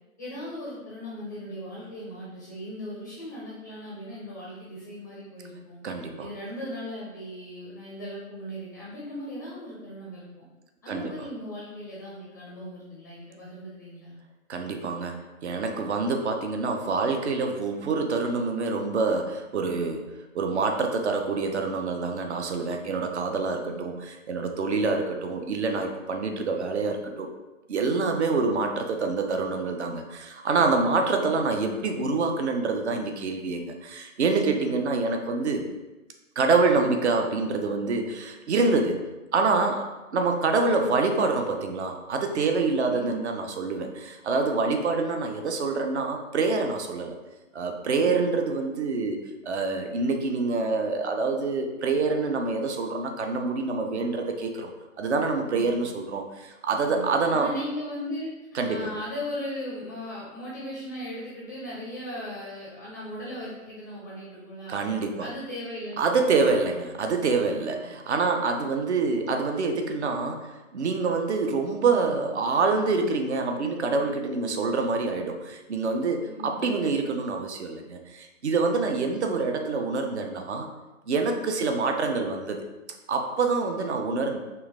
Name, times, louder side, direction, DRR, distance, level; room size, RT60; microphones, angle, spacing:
voice 1, 0.2-5.8 6.2-10.4 10.8-14.2 23.5-23.9 28.0-28.6 31.0-31.3 34.5-34.8 42.8-43.1 48.0-48.3 55.5-55.8 56.8-58.3 58.6-64.8 65.2-66.6 67.5-67.9 76.2-76.7, equal, 15° left, -6 dB, 0.5 m, -38 dB
voice 2, 5.8-6.3 10.9-11.1 14.5-27.3 27.7-35.6 36.4-39.0 39.3-47.2 47.5-49.2 49.4-54.7 55.0-57.5 58.5-58.9 64.7-65.3 66.0-80.7 81.1-82.6 83.1-84.4, right 4 dB, 50° right, 4 dB, 0.7 m, -26 dB
4.6 x 3.2 x 3.3 m, 1.1 s
figure-of-eight pair, 140°, 42 cm